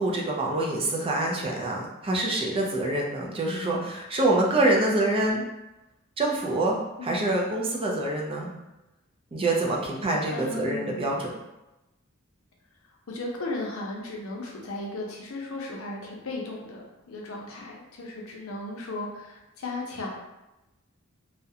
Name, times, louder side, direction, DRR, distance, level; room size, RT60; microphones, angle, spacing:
voice 1, 0.0-5.4 6.2-6.8 7.0-8.5 9.3-11.3, right 2 dB, 25° right, -2 dB, 0.4 m, -26 dB
voice 2, 10.3-11.1 13.1-20.1, left 2 dB, 70° left, -1 dB, 0.6 m, -36 dB
2.4 x 2.1 x 2.7 m, 0.98 s
head